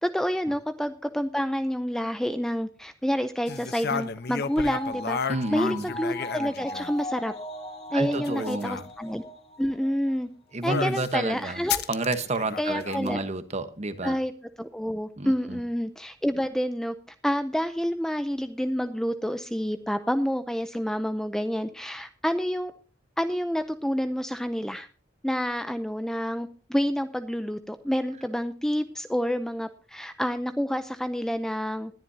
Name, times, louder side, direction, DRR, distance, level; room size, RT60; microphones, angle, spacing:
voice 1, 0.0-5.2 5.5-7.3 7.9-9.2 9.6-10.3 10.6-11.8 12.6-13.2 14.0-14.3 14.6-17.0 17.2-22.7 23.2-24.9 25.2-31.9, equal, 5° left, 10 dB, 0.5 m, -28 dB
sound 1, 3.5-7.1 8.0-8.9 10.7-11.1 11.7-13.1, left 6 dB, 55° left, 0.7 m, -32 dB
sound 2, 3.5-10.1 10.5-10.6, left 1 dB, 35° left, 2.2 m, -39 dB
voice 2, 5.3-5.9 7.9-8.8 10.5-11.6 11.9-14.2 15.2-15.6, right 2 dB, 35° right, 10 dB, 1.1 m, -30 dB
20.0 x 11.0 x 2.8 m, 0.36 s
head